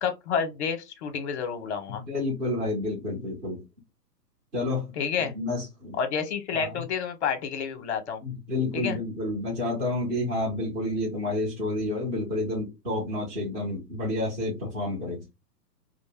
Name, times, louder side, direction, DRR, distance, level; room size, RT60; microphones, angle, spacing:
voice 1, 0.0-2.0 5.0-5.3 6.0-8.2 8.7-9.0, left 6 dB, 45° left, 0.8 m, -29 dB
voice 2, 2.0-3.6 4.5-4.9 5.2-6.0 6.5-6.8 8.2-15.3, left 2 dB, 15° right, 0.7 m, -30 dB
2.5 x 2.1 x 3.3 m
figure-of-eight pair, 120°, 49 cm